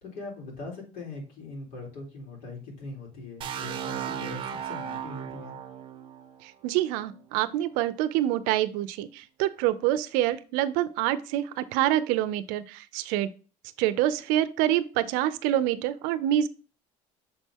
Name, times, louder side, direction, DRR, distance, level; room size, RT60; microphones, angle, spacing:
voice 1, 0.0-5.6, left 3 dB, 75° left, -2 dB, 3.7 m, -41 dB
sound 1, 3.4-7.2, right 9 dB, 35° right, 0.7 m, -36 dB
voice 2, 6.6-13.3 13.8-16.5, right 13 dB, 80° right, 13 dB, 0.6 m, -26 dB
6.6 x 4.2 x 3.7 m, 0.35 s
cardioid pair, 150°, 14 cm